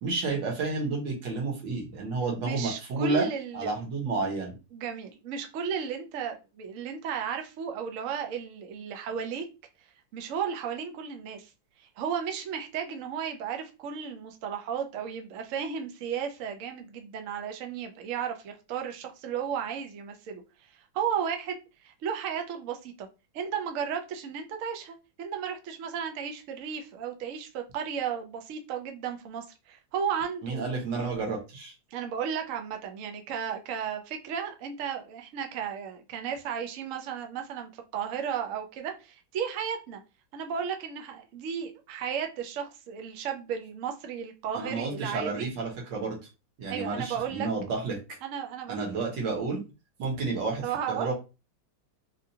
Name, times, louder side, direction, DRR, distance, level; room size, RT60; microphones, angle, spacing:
voice 1, 0.0-3.3 3.5-4.5 30.4-31.7 44.6-46.2 46.6-48.0 48.7-49.6 50.0-51.1, right 3 dB, 65° right, 1.8 m, -30 dB
voice 2, 2.2-3.9 4.7-9.5 10.1-11.5 11.8-20.4 20.7-23.1 23.3-30.7 31.9-40.0 40.3-45.5 46.7-47.5 48.2-48.8 50.6-51.1, right 7 dB, 85° right, 0.7 m, -34 dB
4.1 x 2.4 x 2.7 m
omnidirectional pair, 2.2 m